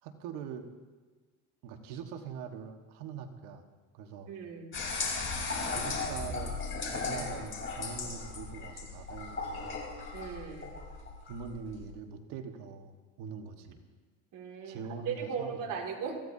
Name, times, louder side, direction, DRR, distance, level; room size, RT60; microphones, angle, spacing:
voice 1, 0.0-0.7 1.6-3.6 3.9-4.3 5.7-9.8 11.3-13.8 14.6-15.8, right 6 dB, 75° right, 5 dB, 1.7 m, -43 dB
voice 2, 4.3-4.7 10.1-10.7 14.3-14.8 15.1-16.2, right 6 dB, 55° right, 1 dB, 2.7 m, -37 dB
sound 1, 4.7-11.9, left 4 dB, 30° left, 4.2 m, -36 dB
23.5 x 15.5 x 2.8 m, 1.3 s
supercardioid pair, 100°, 38 cm